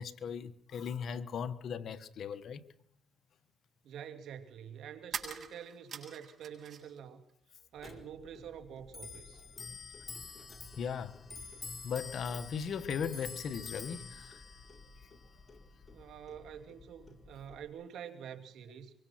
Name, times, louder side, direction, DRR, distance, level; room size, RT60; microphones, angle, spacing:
voice 1, 0.0-2.6 10.8-11.2 11.8-14.4, left 7 dB, 60° left, 1.5 m, -38 dB
sound 1, 2.8-2.9 5.0-7.0 7.3-8.2, right 7 dB, 55° right, 7.8 m, -44 dB
voice 2, 3.8-7.2 7.7-9.4 15.9-18.9, right 8 dB, 75° right, 2.9 m, -47 dB
Clock, 7.8-17.7, left 4 dB, 25° left, 4.3 m, -48 dB
24.5 x 23.5 x 6.0 m
cardioid pair, 90°, 0 cm